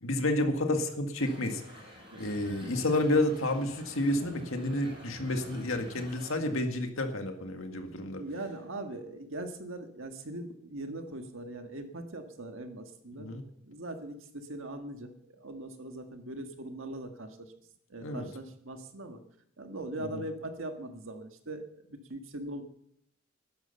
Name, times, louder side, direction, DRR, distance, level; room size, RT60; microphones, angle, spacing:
voice 1, 0.0-1.6 2.2-8.2 13.1-13.4 18.0-18.3 20.0-20.2, left 1 dB, 75° left, 5 dB, 1.9 m, -30 dB
sound 1, 1.2-6.3, equal, 25° right, 6.8 m, -49 dB
voice 2, 8.2-13.3 13.6-17.5 17.9-19.2 19.6-22.6, right 1 dB, 70° right, 6 dB, 1.7 m, -41 dB
12.5 x 10.5 x 6.9 m, 0.74 s
head